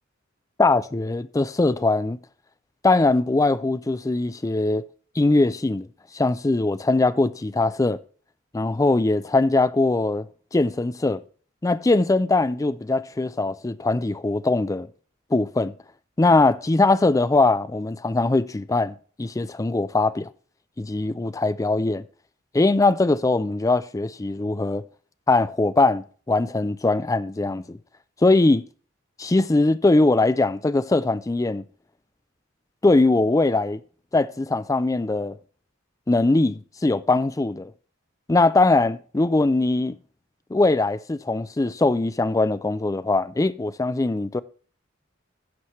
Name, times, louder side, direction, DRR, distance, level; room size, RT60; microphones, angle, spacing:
voice 1, 0.6-2.2 2.8-4.8 5.2-5.9 6.1-8.0 8.5-11.2 11.6-14.9 15.3-15.7 16.2-20.3 20.8-22.0 22.5-24.8 25.3-27.8 28.2-28.6 29.2-31.7 32.8-33.8 34.1-35.4 36.1-37.7 38.3-40.0 40.5-44.4, left 2 dB, 15° left, 0.4 m, -21 dB
15.5 x 5.9 x 3.1 m
head